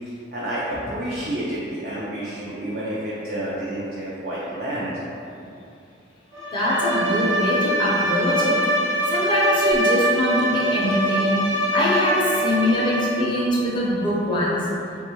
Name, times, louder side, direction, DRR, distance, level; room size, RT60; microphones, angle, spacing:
voice 1, 0.3-4.9, right 1 dB, 50° right, -7 dB, 0.4 m, -29 dB
Bowed string instrument, 6.3-13.4, equal, 90° right, 0.7 m, -23 dB
voice 2, 6.5-8.7 9.1-14.7, left 1 dB, 25° left, -6 dB, 0.5 m, -23 dB
3.4 x 2.3 x 2.8 m, 2.6 s
head